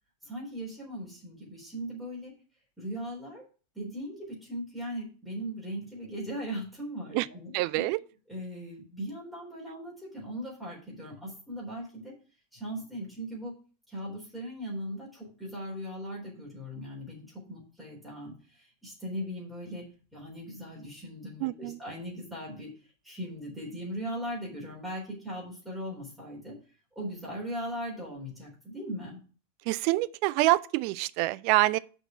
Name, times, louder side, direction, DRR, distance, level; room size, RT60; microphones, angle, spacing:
voice 1, 0.2-2.3 2.8-3.4 3.7-7.5 7.8-7.9 8.3-12.1 12.5-13.5 13.9-19.8 20.1-22.7 23.0-26.6 27.0-29.2, equal, ahead, 3.9 m, -39 dB
voice 2, 7.5-8.0 21.4-21.8 29.7-31.8, right 18 dB, 45° right, 0.4 m, -26 dB
6.6 x 4.9 x 7.0 m
figure-of-eight pair, 90°, 0 cm